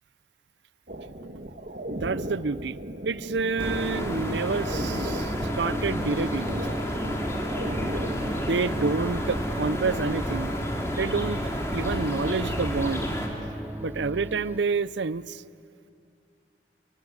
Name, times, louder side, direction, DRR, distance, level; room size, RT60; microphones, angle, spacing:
sound 1, 0.9-9.1, right 1 dB, 50° right, 1.6 m, -36 dB
voice 1, 2.0-2.8 3.0-6.5 8.1-10.6 10.9-11.4 11.7-13.1 13.8-15.4, right 4 dB, 80° right, 18 dB, 0.6 m, -28 dB
sound 2, 3.6-13.3, equal, 15° left, 3.1 m, -31 dB
sound 3, 3.6-14.6, right 1 dB, 10° right, 0.6 m, -36 dB
28.5 x 22.0 x 9.5 m, 2.5 s
head